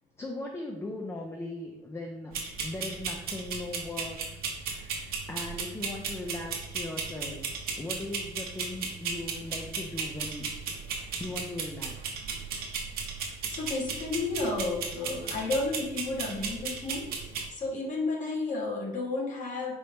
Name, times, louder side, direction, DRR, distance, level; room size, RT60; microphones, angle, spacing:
voice 1, 0.2-2.3 2.6-4.2 4.7-7.4 7.8-10.5 10.9-12.2, left 2 dB, 15° left, 1 dB, 0.4 m, -39 dB
sound 1, 2.3-17.5, right 5 dB, 65° right, 0.8 m, -36 dB
voice 2, 13.5-17.2 17.5-19.7, left 3 dB, 45° left, -1 dB, 1.2 m, -32 dB
4.5 x 2.8 x 3.3 m, 0.95 s
cardioid pair, 110°, 17 cm